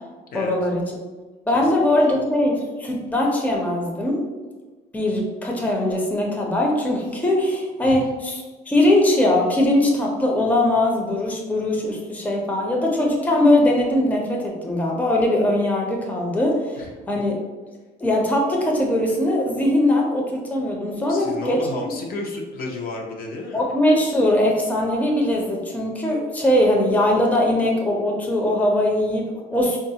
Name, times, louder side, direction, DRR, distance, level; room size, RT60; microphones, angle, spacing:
voice 1, 0.3-0.8 1.5-4.2 4.9-16.8 17.1-17.4 18.0-21.9 23.5-29.8, left 1 dB, 10° left, -1 dB, 0.5 m, -21 dB
voice 2, 1.5-2.2 7.8-8.0 16.8-16.9 21.1-23.7, left 3 dB, 60° left, 0 dB, 0.6 m, -32 dB
3.6 x 2.3 x 2.7 m, 1.3 s
cardioid pair, 110°, 17 cm